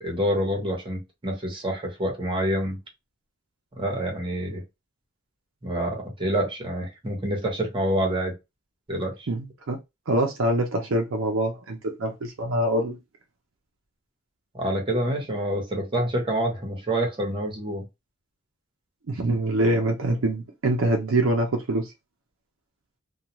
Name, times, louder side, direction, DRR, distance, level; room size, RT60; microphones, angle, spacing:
voice 1, 0.0-2.8 3.8-4.6 5.6-8.3 8.9-9.3 14.5-17.8, right 1 dB, 25° right, 1.0 m, -27 dB
voice 2, 9.3-9.8 10.1-13.0 19.1-21.9, right 1 dB, 70° right, 0.6 m, -24 dB
2.3 x 2.3 x 2.9 m
head